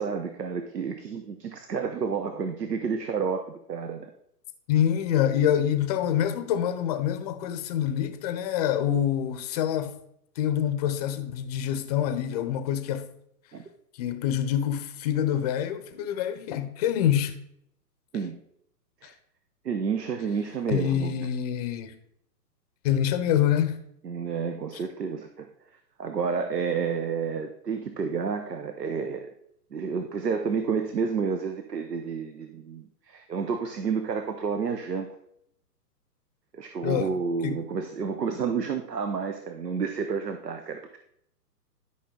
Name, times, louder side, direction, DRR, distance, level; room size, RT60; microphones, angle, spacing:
voice 1, 0.0-4.1 13.5-13.6 18.1-18.4 19.0-19.1 19.6-21.1 24.0-25.5 26.0-29.3 29.7-35.1 36.5-41.0, right 6 dB, 85° right, 1.1 m, -30 dB
voice 2, 4.7-9.9 10.4-13.1 14.0-17.3 20.7-22.0 22.8-23.8 36.8-37.1 37.4-37.6, left 10 dB, 25° left, 0.6 m, -26 dB
11.5 x 5.7 x 3.8 m
hypercardioid pair, 125°, 47 cm